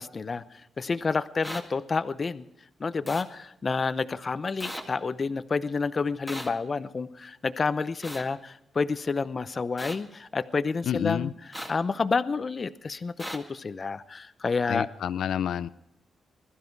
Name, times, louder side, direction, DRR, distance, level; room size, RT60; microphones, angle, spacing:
voice 1, 0.0-2.4 2.8-14.9, left 4 dB, 30° left, 13 dB, 0.7 m, -29 dB
sound 1, 1.4-1.6 3.1-3.2 4.6-4.8 6.3-6.5 8.0-8.2 9.8-9.9 11.5-11.7 13.2-13.4, equal, ahead, 1.9 m, -36 dB
voice 2, 10.9-11.3 14.7-15.7, left 9 dB, 85° left, 14 dB, 0.5 m, -29 dB
21.0 x 13.0 x 4.7 m, 0.80 s
wide cardioid pair, 145°, 0 cm